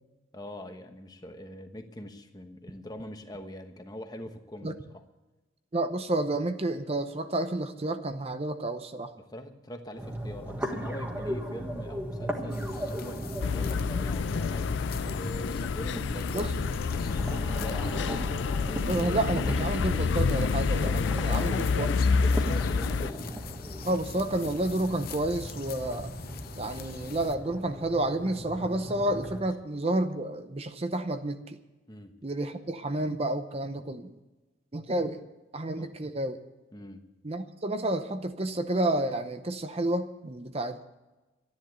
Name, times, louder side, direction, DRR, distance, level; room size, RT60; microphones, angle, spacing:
voice 1, 0.3-5.0 9.2-18.1 21.2-23.2 31.9-32.1 35.8-35.9 36.7-37.0, left 1 dB, 20° left, 6 dB, 1.1 m, -43 dB
voice 2, 5.7-9.1 16.3-16.5 18.9-21.9 23.8-26.1 26.5-31.6 32.2-34.1 34.7-35.2 35.5-36.4 37.2-40.9, right 1 dB, 30° right, 8 dB, 0.7 m, -30 dB
sound 1, 10.0-29.4, equal, 10° right, 1.5 m, -38 dB
sound 2, 12.5-27.4, left 4 dB, 50° left, 0.8 m, -43 dB
sound 3, 13.4-23.1, left 5 dB, 65° left, 0.4 m, -28 dB
13.0 x 10.5 x 8.1 m, 1.1 s
head